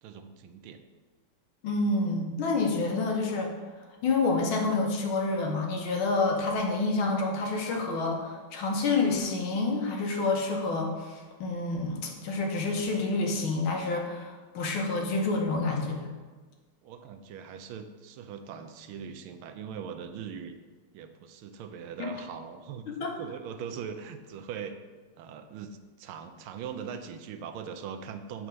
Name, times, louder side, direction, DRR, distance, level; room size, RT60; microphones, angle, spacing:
voice 1, 0.0-0.8 16.8-20.6 20.9-24.7 25.2-28.5, right 7 dB, 85° right, 8 dB, 1.5 m, -41 dB
voice 2, 1.6-3.5 4.0-16.1 22.0-22.1 23.0-23.2, left 3 dB, 75° left, 1 dB, 1.8 m, -28 dB
7.8 x 3.7 x 6.3 m, 1.4 s
omnidirectional pair, 2.3 m